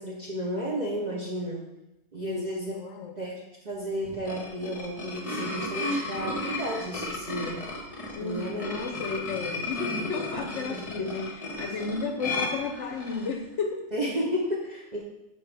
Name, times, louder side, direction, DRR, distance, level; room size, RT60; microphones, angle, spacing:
voice 1, 0.0-1.6 2.1-2.7 3.2-7.7 8.2-8.6 10.7-10.8 13.9-15.0, equal, 40° right, -3 dB, 0.6 m, -32 dB
voice 2, 2.2-3.1 8.1-13.9, left 4 dB, 60° left, 3 dB, 0.8 m, -33 dB
sound 1, 4.0-13.4, left 2 dB, 30° left, 0.8 m, -34 dB
6.7 x 4.4 x 3.3 m, 0.94 s
omnidirectional pair, 1.5 m